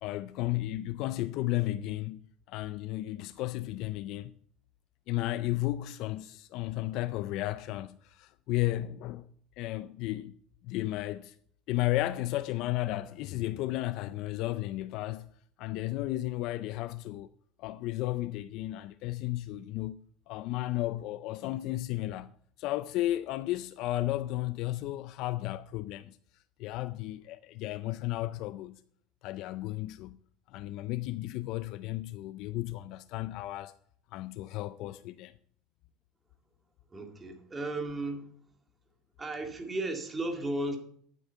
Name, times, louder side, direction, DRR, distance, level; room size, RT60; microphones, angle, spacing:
voice 1, 0.0-4.3 5.1-9.3 9.6-10.3 10.6-11.3 11.7-15.3 15.6-17.3 17.6-22.3 22.6-26.2 26.6-28.8 29.2-30.2 30.5-33.7 34.1-35.3, left 16 dB, 60° left, 0.4 m, -33 dB
voice 2, 36.9-38.3 39.2-40.8, right 2 dB, 15° right, 2.0 m, -34 dB
11.5 x 9.2 x 4.5 m
cardioid pair, 135°, 0 cm